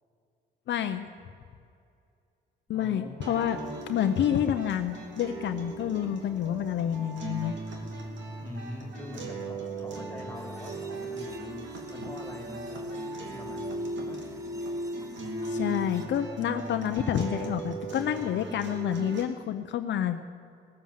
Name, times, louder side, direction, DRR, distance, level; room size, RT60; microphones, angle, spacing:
voice 1, 0.7-1.1 2.7-3.6 3.9-7.5 15.5-20.2, left 10 dB, 65° left, 7 dB, 0.7 m, -28 dB
voice 2, 2.7-3.9 8.4-14.3, left 1 dB, 10° left, 3 dB, 3.0 m, -44 dB
sound 1, 3.2-19.2, right 3 dB, 70° right, 2.5 m, -39 dB
sound 2, 10.4-16.1, left 1 dB, 15° right, 1.3 m, -37 dB
19.0 x 7.2 x 7.7 m, 2.4 s
cardioid pair, 90°, 20 cm